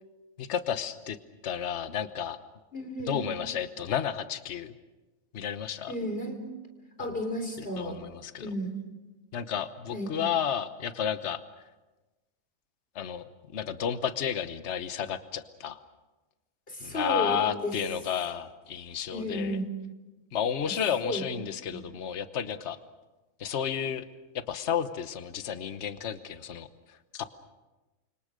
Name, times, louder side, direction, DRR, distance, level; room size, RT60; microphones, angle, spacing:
voice 1, 0.4-1.2 1.4-2.4 3.1-4.7 5.3-5.9 7.6-8.5 9.3-11.4 12.9-13.2 13.5-15.8 16.8-19.6 20.3-22.8 23.4-24.0 24.3-27.3, left 8 dB, 60° left, 11 dB, 1.3 m, -32 dB
voice 2, 2.7-3.3 5.9-6.4 7.0-8.0 8.4-8.8 9.9-10.1 16.7-17.4 17.6-17.7 19.1-19.7 21.0-21.2 21.7-21.8, equal, 45° left, 4 dB, 4.1 m, -32 dB
30.0 x 26.0 x 5.1 m, 1.1 s
omnidirectional pair, 1.4 m